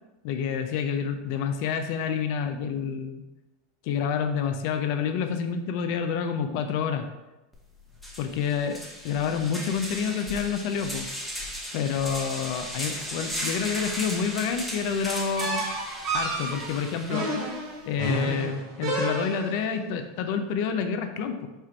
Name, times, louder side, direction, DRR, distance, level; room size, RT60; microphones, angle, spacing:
voice 1, 0.2-3.2 3.8-7.0 8.2-8.8 9.0-11.1 11.7-15.6 16.1-17.3 17.9-21.5, left 7 dB, 60° left, 7 dB, 0.5 m, -28 dB
sound 1, 7.5-7.6 8.0-17.5, equal, ahead, 0.9 m, -36 dB
sound 2, 15.4-19.7, right 2 dB, 55° right, 1.4 m, -31 dB
4.5 x 2.5 x 4.4 m, 1.0 s
supercardioid pair, 120°, 0 cm